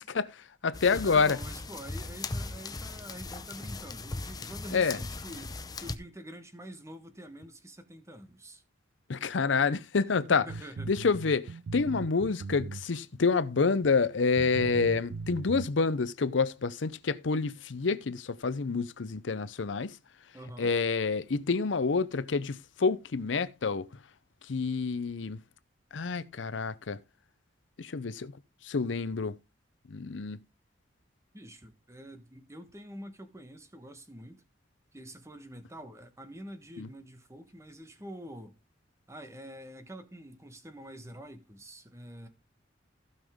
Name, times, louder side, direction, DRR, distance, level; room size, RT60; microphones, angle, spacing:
voice 1, 0.0-1.4 4.7-5.0 9.1-10.5 10.9-20.0 20.6-23.9 24.4-25.4 25.9-27.0 27.8-28.3 28.6-29.4 29.9-30.4 36.8-36.9, left 4 dB, 75° left, 0.6 m, -28 dB
sound 1, 0.7-6.0, left 3 dB, 20° left, 0.7 m, -39 dB
voice 2, 1.0-8.6 10.1-10.9 20.3-20.7 31.3-34.4 34.9-38.6 39.1-42.3, equal, 15° right, 1.3 m, -46 dB
sound 2, 10.5-13.2 13.8-13.9 14.4-15.7, right 4 dB, 85° right, 0.4 m, -39 dB
15.5 x 5.5 x 3.6 m
head